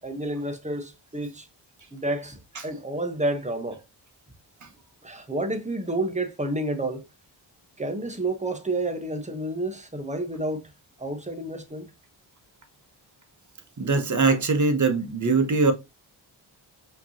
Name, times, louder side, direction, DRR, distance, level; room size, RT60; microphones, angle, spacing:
voice 1, 0.0-1.5 1.9-3.8 5.0-7.1 7.8-10.7 11.0-11.9, right 1 dB, 15° right, 1.1 m, -30 dB
voice 2, 13.8-15.7, right 3 dB, 40° right, 1.2 m, -22 dB
5.1 x 3.1 x 2.9 m
cardioid pair, 55°, 46 cm